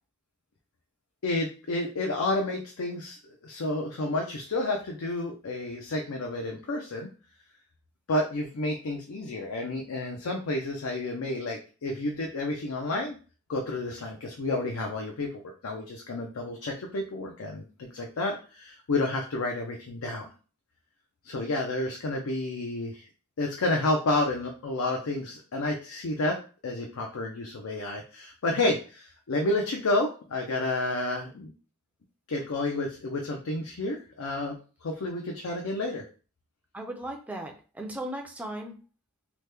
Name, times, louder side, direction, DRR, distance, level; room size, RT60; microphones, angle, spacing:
voice 1, 1.2-7.1 8.1-13.2 13.5-20.3 21.2-23.1 23.4-26.4 26.6-31.5 32.3-34.5 34.8-36.0, left 2 dB, 85° left, 1 dB, 0.5 m, -30 dB
voice 2, 36.7-38.8, right 1 dB, 5° right, 1 dB, 0.4 m, -37 dB
2.9 x 2.1 x 3.4 m, 0.36 s
head